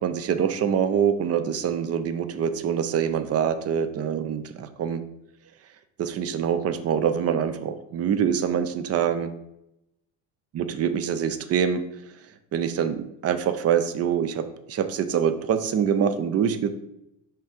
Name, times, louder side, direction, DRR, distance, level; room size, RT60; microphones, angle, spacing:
voice 1, 0.0-5.0 6.0-9.3 10.5-11.8 12.5-14.4 14.7-16.7, right 8 dB, 35° right, 11 dB, 0.6 m, -25 dB
5.3 x 3.7 x 5.1 m, 0.85 s
supercardioid pair, 100°, 40 cm